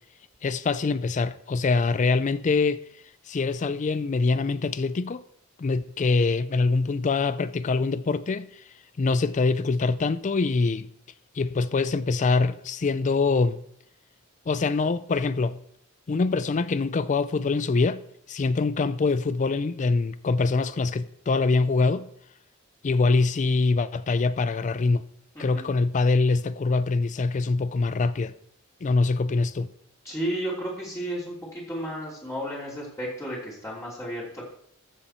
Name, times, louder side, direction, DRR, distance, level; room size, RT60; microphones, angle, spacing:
voice 1, 0.4-2.8 3.3-5.2 5.6-8.6 9.0-10.9 11.4-13.6 14.5-15.6 16.1-18.0 18.3-22.1 22.8-25.0 25.4-28.3 28.8-29.7, left 3 dB, 35° left, 0.4 m, -24 dB
voice 2, 25.3-25.7 30.0-34.5, right 1 dB, 15° left, 3.0 m, -33 dB
14.0 x 7.1 x 4.4 m
head